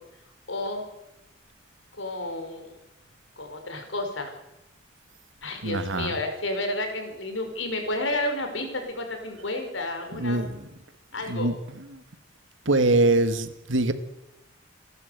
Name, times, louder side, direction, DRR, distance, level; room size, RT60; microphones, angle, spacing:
voice 1, 0.5-0.9 2.0-2.8 3.4-4.3 5.4-10.5 11.1-11.5, left 1 dB, 80° left, 5 dB, 5.4 m, -31 dB
voice 2, 5.6-6.1 10.1-10.7 11.3-12.0 12.7-13.9, right 2 dB, 80° right, 10 dB, 1.9 m, -24 dB
28.5 x 12.0 x 8.2 m, 0.89 s
head